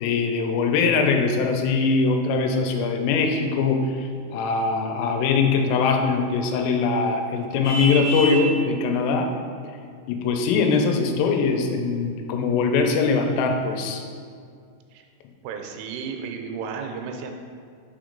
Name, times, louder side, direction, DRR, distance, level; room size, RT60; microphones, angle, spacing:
voice 1, 0.0-9.3 10.1-14.0, left 4 dB, 90° left, 4 dB, 3.1 m, -22 dB
Vehicle horn car horn honking, 7.6-8.5, right 1 dB, 70° left, 1.4 m, -27 dB
voice 2, 15.4-17.3, right 6 dB, 85° right, 3 dB, 3.1 m, -33 dB
6.9 x 3.0 x 5.1 m, 2.2 s
omnidirectional pair, 5.5 m